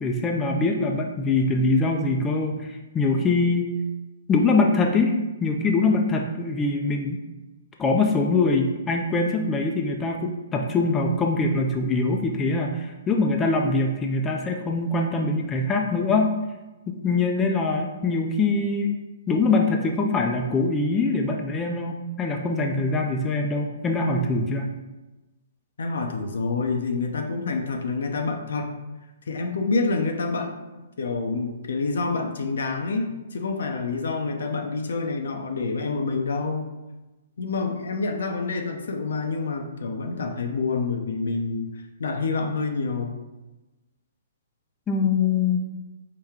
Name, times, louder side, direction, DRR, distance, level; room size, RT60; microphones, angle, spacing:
voice 1, 0.0-3.7 4.3-7.2 7.8-16.3 16.9-19.0 19.3-24.7 44.9-45.6, left 3 dB, 15° left, 1 dB, 0.4 m, -23 dB
voice 2, 25.8-28.7 29.3-30.6 31.0-36.7 37.4-41.7 42.0-43.1, left 4 dB, 75° left, 4 dB, 0.6 m, -27 dB
4.7 x 2.2 x 3.5 m, 1.1 s
hypercardioid pair, 140°, 0 cm